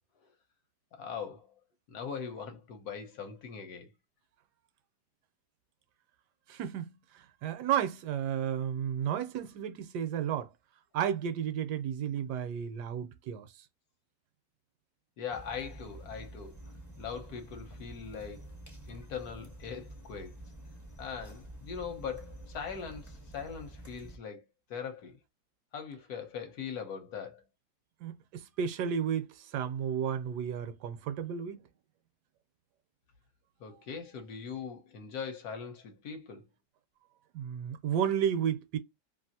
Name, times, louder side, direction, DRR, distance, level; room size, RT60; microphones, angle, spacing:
voice 1, 1.0-1.5 1.9-3.9 15.2-16.6 17.0-18.5 18.9-20.3 21.0-24.4 24.7-25.2 25.7-27.4 33.6-36.4, left 6 dB, 70° left, 1.1 m, -41 dB
voice 2, 6.5-10.5 10.9-13.5 28.0-31.6 37.3-38.8, right 8 dB, 75° right, 1.1 m, -32 dB
sound 1, 15.3-24.2, right 1 dB, 20° left, 0.5 m, -48 dB
2.9 x 2.5 x 2.7 m
omnidirectional pair, 1.9 m